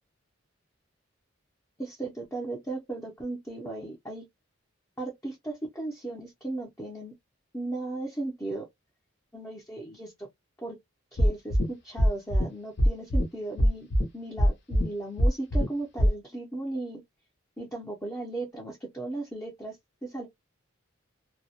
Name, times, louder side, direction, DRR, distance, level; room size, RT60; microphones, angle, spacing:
voice 1, 1.8-4.3 5.0-7.1 7.5-8.7 9.3-10.3 10.6-10.8 11.1-13.9 14.1-17.0 17.6-20.3, right 2 dB, 10° left, 0.5 m, -36 dB
sound 1, 11.2-11.6 12.0-12.4 12.8-13.2 13.6-14.0 14.4-14.8 15.2-15.7 16.0-16.1, equal, 55° left, 0.7 m, -21 dB
2.2 x 2.0 x 2.7 m
head